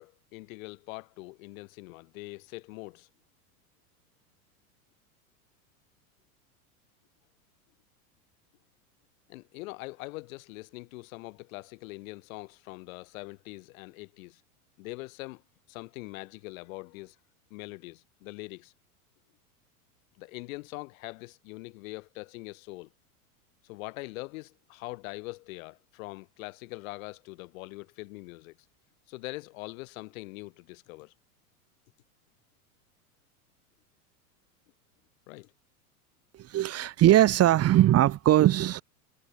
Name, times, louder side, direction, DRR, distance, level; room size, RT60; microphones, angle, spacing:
voice 1, 0.0-3.1 9.3-14.4 14.8-15.4 15.7-17.2 17.5-18.7 20.2-22.9 23.6-28.6 29.1-31.1 35.3-35.5, left 23 dB, 60° left, 4.0 m, -42 dB
voice 2, 36.3-38.8, right 13 dB, 35° right, 1.6 m, -20 dB
hypercardioid pair, 105°, 45 cm